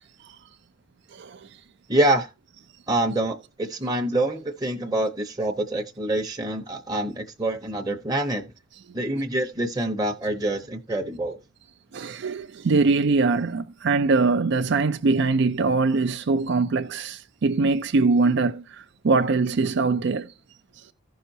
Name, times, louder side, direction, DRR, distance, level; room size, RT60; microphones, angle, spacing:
voice 1, 1.1-1.5 11.9-20.3, right 3 dB, 65° right, 0.5 m, -22 dB
voice 2, 1.9-2.3 2.9-8.5 8.9-11.4, right 1 dB, 20° right, 0.8 m, -26 dB
15.5 x 5.7 x 2.7 m
head